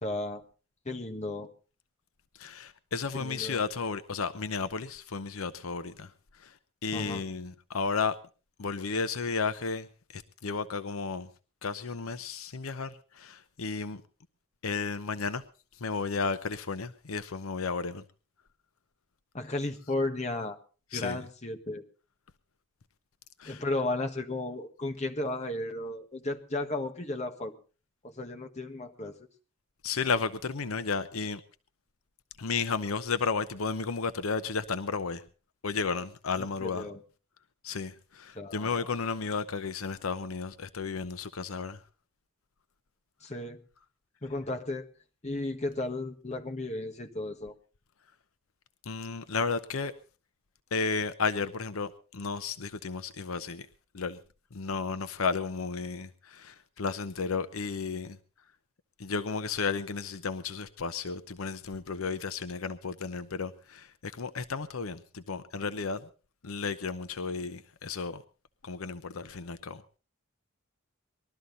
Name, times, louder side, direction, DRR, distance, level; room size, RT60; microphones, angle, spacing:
voice 1, 0.0-0.4 0.8-1.5 3.2-3.6 6.9-7.2 19.3-20.6 20.9-21.8 23.4-27.5 28.0-29.2 36.4-37.0 38.3-38.9 43.2-43.6 44.2-44.9 45.2-47.5, left 2 dB, 35° left, 1.6 m, -34 dB
voice 2, 2.4-6.1 6.8-8.2 8.6-9.9 10.1-11.3 11.6-14.0 14.6-15.4 15.8-18.0 20.9-21.2 23.4-23.6 29.8-31.4 32.4-35.2 35.6-36.9 37.6-41.8 48.9-49.9 50.7-53.7 53.9-54.2 54.5-58.2 59.0-66.0 66.4-68.2 68.6-69.8, left 4 dB, 80° left, 0.8 m, -33 dB
20.5 x 13.0 x 4.0 m
head